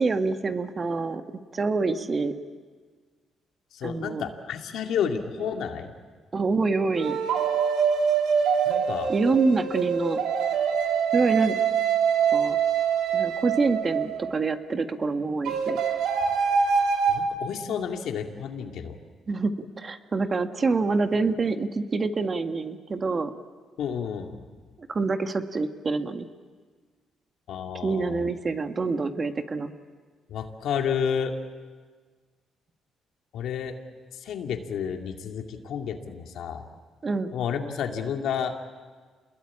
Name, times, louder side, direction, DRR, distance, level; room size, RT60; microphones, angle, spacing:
voice 1, 0.0-2.3 3.8-4.2 6.3-7.2 9.1-10.2 11.1-11.5 12.3-12.6 13.1-15.8 19.3-23.3 24.9-26.3 27.8-29.7 37.0-37.3, right 4 dB, 35° right, 7 dB, 1.5 m, -26 dB
voice 2, 3.7-5.9 8.7-9.1 17.1-18.9 23.8-24.4 27.5-28.2 30.3-31.3 33.3-33.7 34.2-36.6 37.3-38.5, left 7 dB, 75° left, 4 dB, 2.4 m, -30 dB
sound 1, 5.4-5.6 6.9-14.3 15.5-17.2, right 7 dB, 90° right, 2.7 m, -24 dB
28.5 x 21.0 x 8.7 m, 1.5 s
cardioid pair, 90°, 0 cm